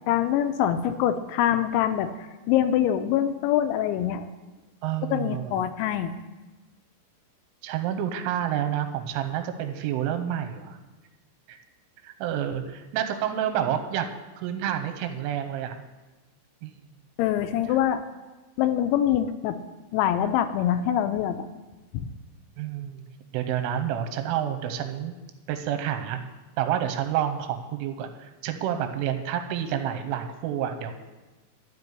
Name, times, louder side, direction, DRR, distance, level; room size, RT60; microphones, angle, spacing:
voice 1, 0.1-4.3 5.1-6.1 17.2-18.0 18.6-19.6 19.9-21.5 21.9-22.1, left 10 dB, 85° left, 9 dB, 2.7 m, -24 dB
voice 2, 4.8-5.6 7.6-10.8 11.5-11.6 12.0-14.1 14.4-15.7 16.6-16.8 22.6-23.0 23.3-25.1 25.5-26.2 26.6-30.9, right 10 dB, 90° right, 7 dB, 3.3 m, -29 dB
12.5 x 5.3 x 8.0 m, 1.2 s
omnidirectional pair, 5.6 m